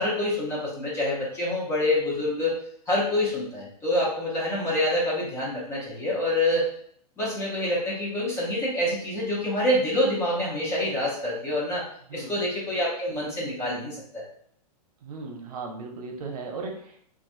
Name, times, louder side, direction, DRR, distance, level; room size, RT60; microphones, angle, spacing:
voice 1, 0.0-2.6 2.9-6.7 7.2-11.8 12.1-14.2, left 1 dB, 15° left, -6 dB, 0.7 m, -26 dB
voice 2, 12.1-12.4 15.0-17.0, right 4 dB, 70° right, 1 dB, 0.7 m, -37 dB
3.0 x 2.3 x 2.5 m, 0.64 s
supercardioid pair, 160°, 20 cm